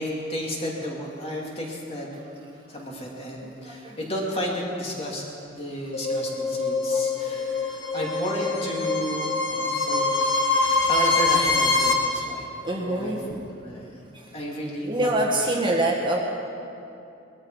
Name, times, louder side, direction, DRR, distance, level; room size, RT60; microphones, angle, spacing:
voice 1, 0.0-2.1 2.7-5.2 5.5-10.0 10.9-12.5 12.8-13.2 13.6-14.1 14.3-15.1, equal, 30° left, -3 dB, 2.6 m, -32 dB
voice 2, 2.1-2.9 3.4-4.4 6.9-8.0 9.2-9.3 9.6-10.2 10.4-10.9 12.2-12.3 12.6-13.4 14.1-14.4 14.8-16.2, right 1 dB, 25° right, -1 dB, 1.5 m, -29 dB
sound 1, 5.9-11.9, left 3 dB, 75° left, 1.7 m, -24 dB
20.5 x 13.5 x 4.8 m, 2.7 s
head